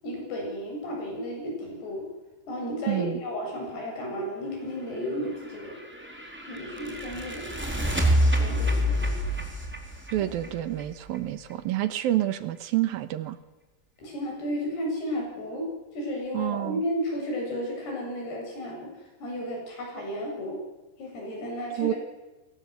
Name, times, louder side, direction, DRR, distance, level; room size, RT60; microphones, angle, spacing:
voice 1, 0.0-2.0 2.5-5.8 6.5-7.5 8.3-9.1 10.2-10.3 14.0-15.6 15.9-18.9 19.2-20.6 21.0-22.0, equal, 80° left, 0 dB, 9.7 m, -33 dB
voice 2, 2.9-3.2 10.1-13.4 16.3-16.8 21.8-21.9, right 14 dB, 70° right, 12 dB, 2.7 m, -28 dB
sound 1, 5.4-11.2, equal, 5° right, 3.6 m, -27 dB
28.5 x 20.5 x 8.2 m, 1.1 s
omnidirectional pair, 4.6 m